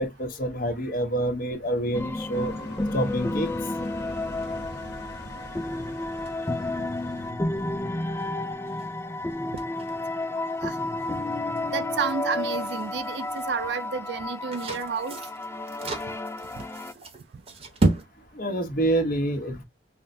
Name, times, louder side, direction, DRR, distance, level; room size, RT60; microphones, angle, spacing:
voice 1, 0.0-2.5 2.9-3.5 18.3-19.6, right 1 dB, 55° left, 1.1 m, -27 dB
sound 1, 1.6-18.0, right 2 dB, 35° right, 1.0 m, -36 dB
sound 2, 1.9-16.9, left 2 dB, 15° left, 0.4 m, -31 dB
sound 3, 2.3-7.3, left 1 dB, 75° left, 1.1 m, -42 dB
voice 2, 11.7-15.2, right 6 dB, 70° right, 0.5 m, -30 dB
5.6 x 2.1 x 2.6 m
head